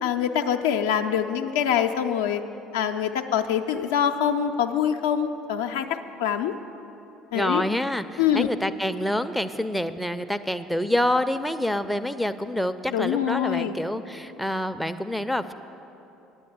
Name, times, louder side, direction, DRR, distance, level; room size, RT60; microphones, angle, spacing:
voice 1, 0.0-2.4 2.7-6.5 7.3-7.6 8.2-8.5 12.9-13.8, left 9 dB, 70° left, 6 dB, 0.4 m, -24 dB
voice 2, 7.3-15.5, left 1 dB, ahead, 9 dB, 0.4 m, -27 dB
9.6 x 8.6 x 6.9 m, 3.0 s
figure-of-eight pair, 60°, 0 cm